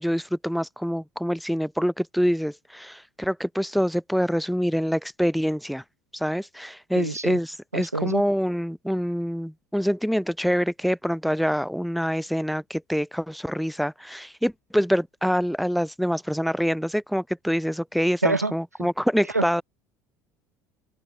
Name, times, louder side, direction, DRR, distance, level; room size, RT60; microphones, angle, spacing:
voice 1, 0.0-5.8 6.1-19.6, equal, ahead, 4.6 m, -26 dB
voice 2, 6.9-7.4 7.7-8.2 18.2-18.5 19.3-19.5, right 3 dB, 90° right, 3.4 m, -26 dB
open air
figure-of-eight pair, 65°, 8 cm